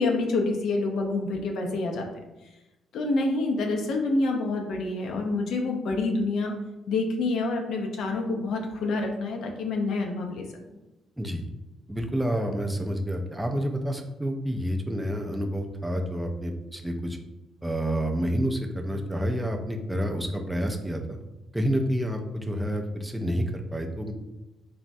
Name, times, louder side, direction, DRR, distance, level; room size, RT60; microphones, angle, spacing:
voice 1, 0.0-2.1 2.9-6.5 6.9-10.5, left 3 dB, 75° left, 2 dB, 0.4 m, -27 dB
voice 2, 11.2-11.5 11.9-17.2 17.6-21.2 21.5-24.1, equal, 5° right, 3 dB, 0.3 m, -29 dB
3.4 x 2.0 x 2.5 m, 1.0 s
cardioid pair, 90°, 0 cm